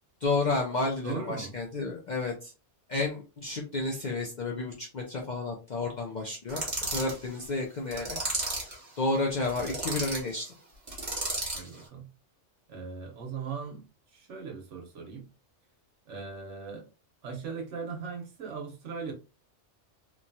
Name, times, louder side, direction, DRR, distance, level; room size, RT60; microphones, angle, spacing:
voice 1, 0.2-2.5 2.9-6.6 6.9-8.2 9.0-10.5, left 3 dB, 55° left, -1 dB, 0.5 m, -31 dB
voice 2, 1.0-1.6 11.5-12.1 12.7-13.8 14.1-15.3 16.0-16.9 17.2-19.1, right 5 dB, 70° right, 1 dB, 1.1 m, -39 dB
sound 1, 6.5-7.2 7.9-8.8 9.4-10.2 10.9-11.7, right 2 dB, 35° right, 1.2 m, -33 dB
2.9 x 2.2 x 2.6 m, 0.32 s
omnidirectional pair, 1.3 m